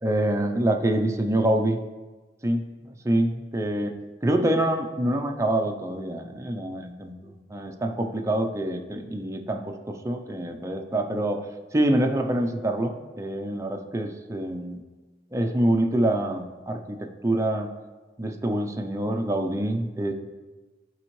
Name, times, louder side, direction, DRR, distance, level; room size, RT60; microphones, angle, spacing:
voice 1, 0.0-1.8 2.4-3.9 4.2-11.4 11.7-14.8 15.3-17.7 18.2-20.1, right 1 dB, 15° right, 4 dB, 0.5 m, -26 dB
11.5 x 4.3 x 3.1 m, 1.3 s
head